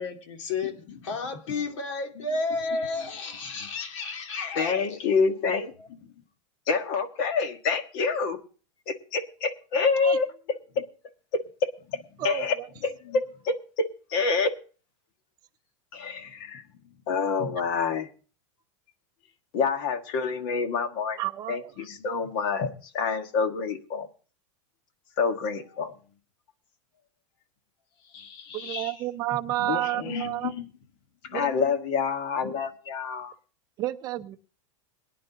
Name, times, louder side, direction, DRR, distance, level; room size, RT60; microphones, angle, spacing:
voice 1, 0.0-5.0, left 3 dB, 70° left, 2.9 m, -32 dB
voice 2, 2.7-3.1 3.5-3.7 4.5-6.1 6.7-8.4 8.8-10.3 10.7-10.8 11.3-12.6 12.8-14.5 15.9-16.7 17.1-18.1 19.5-21.2 21.5-24.1 25.2-26.0 28.0-29.0 29.6-30.7 31.2-33.4, left 5 dB, 45° left, 1.6 m, -28 dB
voice 3, 21.2-21.7 28.5-30.5 31.3-31.5 33.8-34.4, right 16 dB, 25° right, 0.7 m, -30 dB
22.5 x 10.0 x 2.8 m
supercardioid pair, 170°, 17 cm